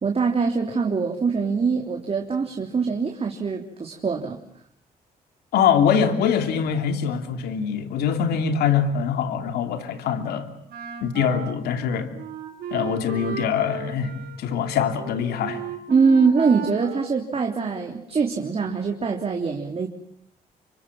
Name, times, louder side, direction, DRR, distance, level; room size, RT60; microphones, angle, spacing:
voice 1, 0.0-4.4 15.9-19.9, right 5 dB, 40° right, 2 dB, 3.5 m, -23 dB
voice 2, 5.5-10.5 11.0-12.1 12.7-14.1 14.4-15.6, left 7 dB, 90° left, 8 dB, 3.0 m, -23 dB
Wind instrument woodwind instrument, 10.7-17.9, right 9 dB, 75° right, 4.9 m, -36 dB
29.0 x 25.5 x 7.5 m, 0.65 s
cardioid pair, 80°, 16 cm